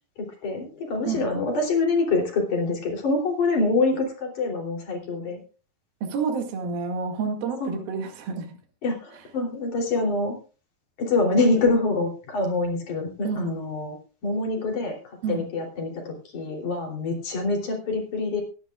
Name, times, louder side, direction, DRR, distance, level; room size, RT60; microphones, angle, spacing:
voice 1, 0.4-5.4 7.6-7.8 8.8-10.4 11.0-14.0 14.2-18.4, left 3 dB, 55° left, 0 dB, 4.5 m, -25 dB
voice 2, 6.0-8.6 13.2-13.6 15.2-15.5, right 5 dB, 70° right, 3 dB, 3.8 m, -29 dB
22.5 x 10.5 x 2.4 m, 0.36 s
omnidirectional pair, 4.4 m